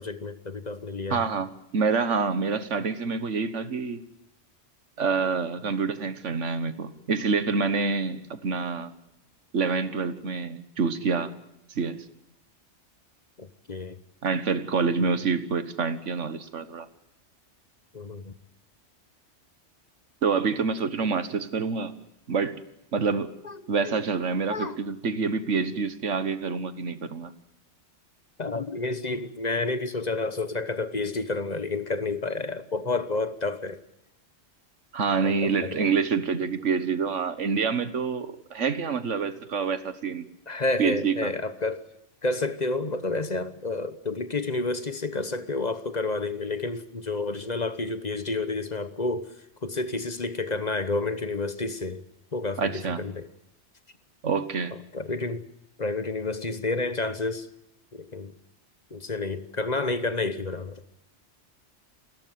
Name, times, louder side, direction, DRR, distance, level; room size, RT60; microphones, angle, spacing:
voice 1, 0.0-1.2 13.4-14.0 17.9-18.3 23.4-23.6 23.9-24.0 24.5-24.8 28.4-33.8 35.2-35.9 40.5-41.8 42.2-49.3 49.6-52.0 52.3-53.3 54.9-55.5 55.8-57.5 57.9-58.3 58.9-60.8, left 3 dB, 40° left, 1.2 m, -30 dB
voice 2, 1.1-4.0 5.0-8.9 9.5-11.3 11.7-12.0 14.2-16.9 20.2-21.9 22.3-22.6 22.9-23.3 23.7-27.3 34.9-40.3 40.8-41.3 52.6-53.0 54.2-54.7, right 5 dB, 90° right, 1.7 m, -27 dB
29.0 x 13.5 x 9.3 m
omnidirectional pair, 1.2 m